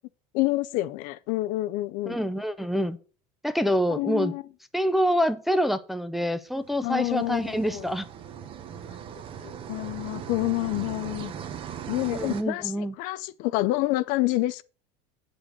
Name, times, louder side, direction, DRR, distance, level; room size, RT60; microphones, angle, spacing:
voice 1, 0.3-2.2 4.0-4.4 6.8-7.9 9.4-11.3 11.9-14.6, left 18 dB, 55° left, 0.5 m, -28 dB
voice 2, 2.1-3.0 3.4-4.3 4.7-8.1 12.1-12.9, equal, ahead, 0.5 m, -26 dB
sound 1, 6.6-12.4, right 8 dB, 30° right, 0.9 m, -39 dB
8.8 x 5.1 x 6.3 m
cardioid pair, 160°, 17 cm